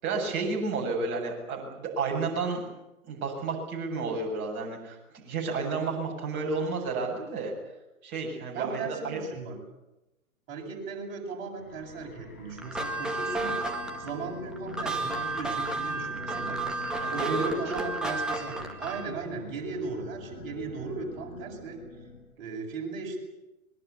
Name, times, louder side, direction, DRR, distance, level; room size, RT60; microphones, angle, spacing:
voice 1, 0.0-2.7 3.0-7.5 8.0-9.2 17.0-17.5 17.7-17.8, right 4 dB, 25° right, -1 dB, 7.5 m, -31 dB
voice 2, 8.5-9.6 10.5-13.6 14.0-16.6 17.1-21.8 22.4-23.2, right 4 dB, 40° right, -1 dB, 8.0 m, -37 dB
sound 1, 11.5-22.3, left 3 dB, 80° left, 5.9 m, -46 dB
sound 2, 12.6-19.2, right 2 dB, ahead, 1.9 m, -32 dB
25.0 x 21.5 x 8.5 m, 0.95 s
figure-of-eight pair, 125°, 44 cm